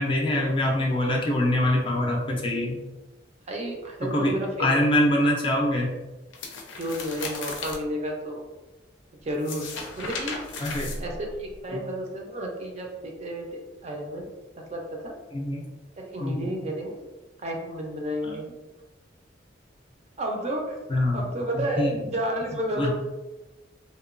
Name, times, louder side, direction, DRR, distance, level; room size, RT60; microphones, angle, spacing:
voice 1, 0.0-2.8 4.0-4.3 4.6-6.0 10.6-10.9 11.7-11.8 15.3-15.6 16.2-16.5 18.2-18.4 20.9-22.0 22.8-22.9, left 1 dB, 30° left, 0 dB, 0.4 m, -24 dB
voice 2, 3.5-4.8 6.8-8.4 9.2-10.4 11.0-14.3 14.7-15.1 16.0-17.0 17.4-18.4 20.2-20.8 21.1-22.9, equal, 35° right, 1 dB, 0.4 m, -31 dB
sound 1, 6.3-7.8 9.3-11.6, left 3 dB, 85° left, 0.4 m, -35 dB
2.9 x 2.2 x 2.4 m, 1.1 s
head